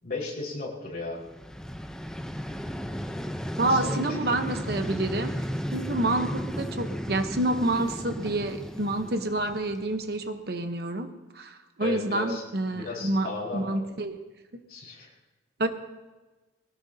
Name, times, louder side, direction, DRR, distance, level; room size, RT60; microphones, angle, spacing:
voice 1, 0.0-1.2 3.7-4.3 11.8-12.4 12.7-13.8 14.7-15.1, left 3 dB, 50° left, -4 dB, 5.0 m, -35 dB
Vehicle, 1.2-10.2, equal, 5° left, 0.7 m, -34 dB
voice 2, 3.6-5.3 5.7-13.3 13.5-14.2 15.6-15.7, right 2 dB, 55° right, 7 dB, 1.0 m, -28 dB
22.0 x 18.0 x 2.8 m, 1.2 s
head